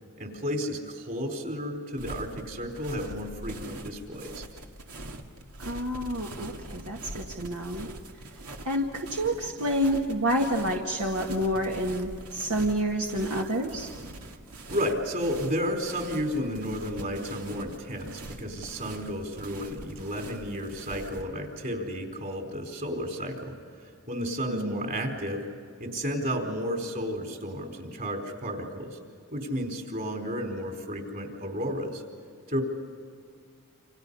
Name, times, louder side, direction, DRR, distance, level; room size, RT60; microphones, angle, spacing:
voice 1, 0.2-4.4 14.7-23.5 23.8-25.4 25.8-29.0 29.3-32.0 32.5-32.6, equal, 40° right, 3 dB, 4.4 m, -32 dB
sound 1, 2.0-21.2, right 2 dB, 85° right, 2.1 m, -43 dB
voice 2, 5.6-7.9 8.6-13.9 24.5-24.9, equal, 70° right, 0 dB, 1.9 m, -29 dB
29.0 x 27.0 x 5.6 m, 2.2 s
head